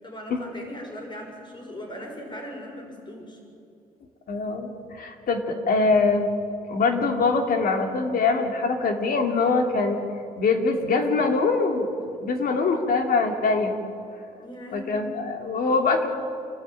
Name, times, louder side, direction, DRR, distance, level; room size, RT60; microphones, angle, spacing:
voice 1, 0.0-3.4 14.4-15.1, equal, 30° left, 1 dB, 6.3 m, -39 dB
voice 2, 4.3-4.7 5.0-6.3 6.7-10.0 10.4-13.8 14.7-16.1, left 4 dB, 70° left, 3 dB, 2.9 m, -23 dB
28.5 x 13.0 x 9.3 m, 2.6 s
cardioid pair, 110°, 16 cm